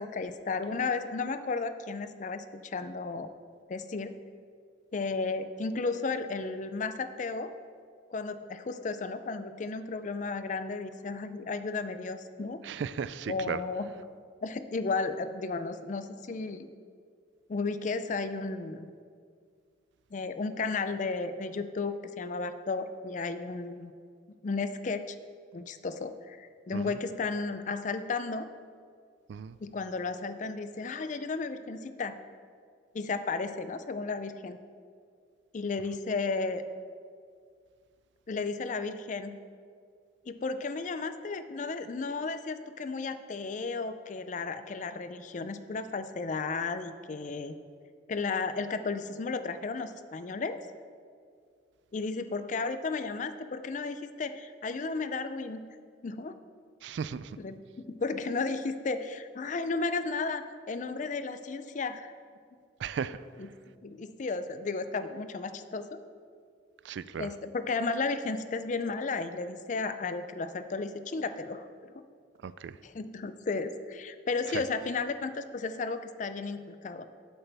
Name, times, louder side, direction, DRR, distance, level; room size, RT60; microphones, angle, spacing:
voice 1, 0.0-3.3 3.7-4.1 4.9-7.5 8.1-12.6 13.3-13.9 14.4-16.7 17.5-18.9 20.1-23.9 24.4-25.1 25.5-28.5 29.6-32.2 32.9-34.6 35.5-36.6 38.3-39.4 40.3-47.6 48.1-50.6 51.9-55.7 56.0-56.3 57.4-57.6 57.9-62.1 63.4-63.5 63.8-66.0 67.2-71.9 72.8-77.1, left 4 dB, 40° left, 11 dB, 0.4 m, -34 dB
voice 2, 12.6-13.6 26.7-26.9 29.3-29.6 56.8-57.3 62.8-63.2 66.8-67.3 72.4-72.7, right 6 dB, 70° right, 16 dB, 0.3 m, -35 dB
12.0 x 7.8 x 3.4 m, 2.1 s
head